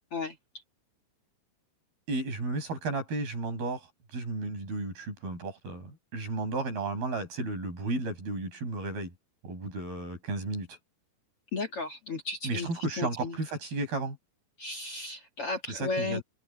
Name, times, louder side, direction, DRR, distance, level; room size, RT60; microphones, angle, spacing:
voice 1, 2.1-3.9 4.1-9.1 9.4-10.8 12.4-14.2 15.7-16.2, right 2 dB, 65° right, 9.3 m, -33 dB
voice 2, 11.5-12.7 13.0-13.4 14.6-16.2, left 3 dB, 40° left, 3.1 m, -34 dB
omnidirectional pair, 4.7 m